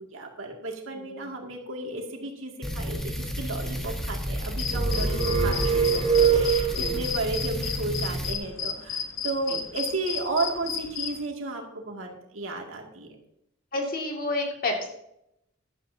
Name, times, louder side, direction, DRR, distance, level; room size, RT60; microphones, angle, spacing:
voice 1, 0.1-13.1, right 2 dB, 75° right, 1 dB, 2.4 m, -33 dB
voice 2, 0.9-1.3 6.7-7.0 9.5-9.6 13.7-14.9, left 2 dB, 45° left, 1 dB, 2.4 m, -30 dB
sound 1, 2.6-8.4, equal, ahead, 1.3 m, -32 dB
sound 2, 4.6-11.3, left 7 dB, 70° left, 1.1 m, -33 dB
sound 3, 4.6-7.1, right 6 dB, 25° right, 5.0 m, -23 dB
15.5 x 11.5 x 2.8 m, 0.81 s
head